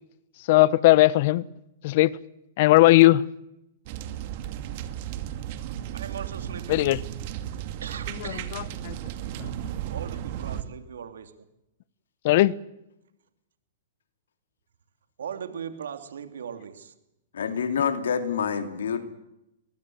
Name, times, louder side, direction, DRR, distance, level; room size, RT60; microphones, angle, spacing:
voice 1, 0.5-1.5 1.8-2.2 2.6-3.2 6.7-7.0 8.1-9.0 9.4-9.7 12.2-12.5, left 17 dB, 50° left, 0.9 m, -19 dB
sound 1, 3.9-10.6, right 11 dB, 50° right, 2.4 m, -34 dB
voice 2, 5.9-6.8 7.8-8.5 9.9-11.5 15.2-16.9, right 8 dB, 85° right, 3.0 m, -38 dB
voice 3, 17.3-19.0, left 7 dB, 85° left, 3.0 m, -27 dB
23.0 x 20.0 x 8.0 m
hypercardioid pair, 140°, 0 cm